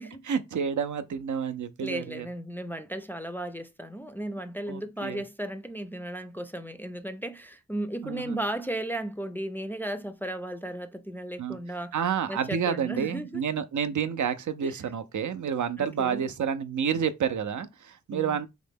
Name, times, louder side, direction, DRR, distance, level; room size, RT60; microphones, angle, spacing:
voice 1, 0.2-2.3 4.7-5.2 8.0-8.4 11.4-11.6 11.9-18.5, right 7 dB, 75° right, 0.5 m, -29 dB
voice 2, 1.8-12.0 12.3-13.4 14.6-14.8 15.8-16.3 18.1-18.4, right 1 dB, 5° left, 0.3 m, -35 dB
3.7 x 2.1 x 3.4 m
wide cardioid pair, 95°, 30 cm